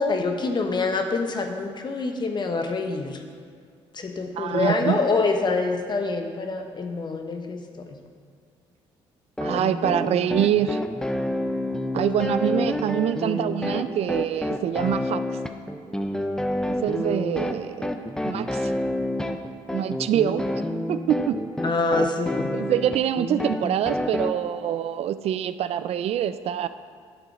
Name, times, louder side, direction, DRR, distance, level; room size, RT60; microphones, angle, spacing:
voice 1, 0.0-3.2 3.9-8.0 21.6-22.6, left 3 dB, 40° left, 5 dB, 1.0 m, -26 dB
voice 2, 4.4-5.0 9.4-10.8 11.9-15.4 16.7-17.9 18.2-18.7 19.7-20.5 20.9-21.4 22.5-26.7, right 10 dB, 60° right, 13 dB, 0.4 m, -25 dB
sound 1, 9.4-24.3, left 1 dB, 5° left, 0.6 m, -28 dB
11.0 x 3.9 x 5.9 m, 2.1 s
supercardioid pair, 70°, 12 cm